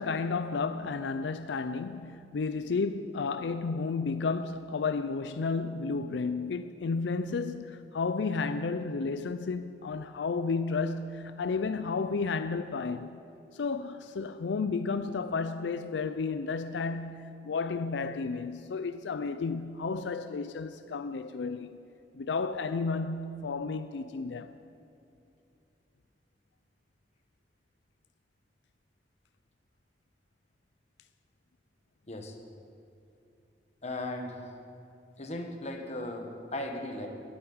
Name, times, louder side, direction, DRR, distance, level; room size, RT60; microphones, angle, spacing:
voice 1, 0.0-13.2 13.5-21.8 22.1-24.5, left 4 dB, 85° left, 0.4 m, -32 dB
voice 2, 33.8-34.6 35.2-37.1, left 1 dB, 40° left, 1.5 m, -37 dB
12.5 x 9.3 x 9.5 m
head